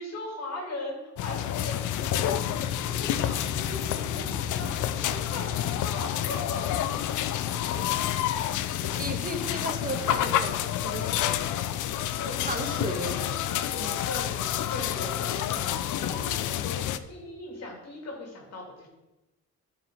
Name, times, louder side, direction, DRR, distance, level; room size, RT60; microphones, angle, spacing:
voice 1, 0.0-6.6 11.4-13.3 14.1-18.9, left 2 dB, 60° left, -1 dB, 3.1 m, -39 dB
sound 1, 1.2-17.0, left 11 dB, 80° left, 0.6 m, -29 dB
sound 2, 2.0-11.2, left 2 dB, 10° left, 3.1 m, -43 dB
voice 2, 8.9-11.4 12.4-13.2 13.8-14.1, right 2 dB, 30° right, 4 dB, 1.7 m, -35 dB
11.5 x 6.2 x 4.9 m, 1.0 s
cardioid pair, 90°, 30 cm